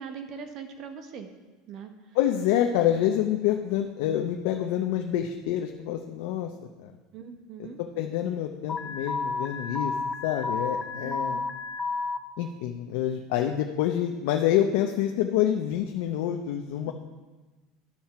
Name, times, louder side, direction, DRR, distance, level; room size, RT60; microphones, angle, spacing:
voice 1, 0.0-1.3 1.7-1.9 7.1-7.8 11.0-11.5 16.9-17.0, right 6 dB, 45° right, 6 dB, 0.9 m, -41 dB
voice 2, 2.1-6.5 6.8-6.9 7.6-9.9 10.2-11.4 12.4-16.9, left 11 dB, 75° left, 4 dB, 0.6 m, -27 dB
Alarm, 8.7-12.2, left 4 dB, 25° left, 0.6 m, -31 dB
12.0 x 4.3 x 5.8 m, 1.2 s
supercardioid pair, 145°, 0 cm